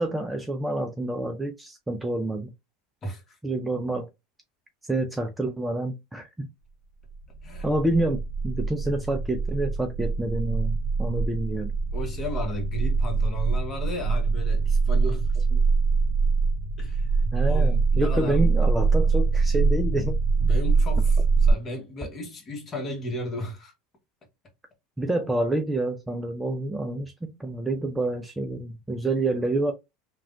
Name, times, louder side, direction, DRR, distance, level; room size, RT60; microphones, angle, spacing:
voice 1, 0.0-2.5 3.4-4.1 4.9-6.5 7.6-11.7 17.3-20.2 20.4-20.6 25.0-29.7, right 1 dB, 10° right, 0.4 m, -28 dB
voice 2, 3.0-3.4 7.4-7.7 11.9-15.3 16.8-18.4 20.5-23.7, left 1 dB, 30° left, 1.1 m, -35 dB
sound 1, 7.1-21.5, right 4 dB, 65° left, 1.0 m, -23 dB
3.3 x 2.3 x 2.4 m
supercardioid pair, 120°, 0 cm